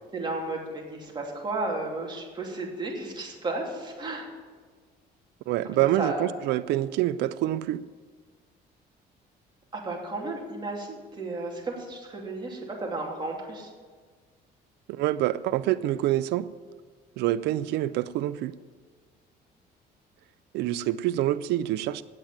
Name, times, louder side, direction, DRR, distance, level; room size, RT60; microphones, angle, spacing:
voice 1, 0.1-4.3 5.8-6.3 9.7-13.7 21.2-21.3, right 2 dB, 25° right, -1 dB, 2.9 m, -33 dB
voice 2, 5.5-7.8 14.9-16.5 17.2-18.5 20.5-22.0, right 14 dB, 80° right, 16 dB, 0.4 m, -26 dB
9.0 x 7.8 x 8.8 m, 1.5 s
cardioid pair, 110°, 17 cm